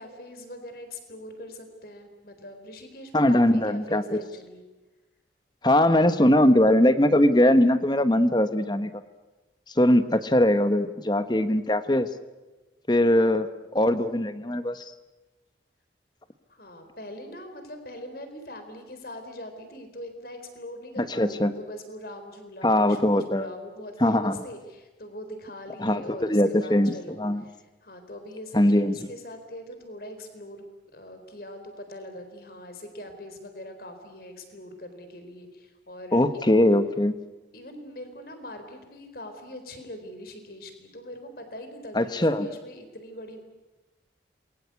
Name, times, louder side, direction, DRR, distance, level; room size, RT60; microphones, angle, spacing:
voice 1, 0.0-4.6 13.1-13.4 16.5-30.6 30.9-36.6 37.5-43.4, left 1 dB, 55° left, 7 dB, 4.0 m, -42 dB
voice 2, 3.1-4.2 5.6-8.9 9.8-12.1 12.9-13.5 13.7-14.8 21.0-21.5 22.6-23.5 24.0-24.4 25.8-26.9 27.2-27.4 28.5-28.9 36.1-37.1 41.9-42.5, left 1 dB, 25° left, 11 dB, 1.2 m, -21 dB
28.0 x 22.0 x 8.3 m, 1.2 s
head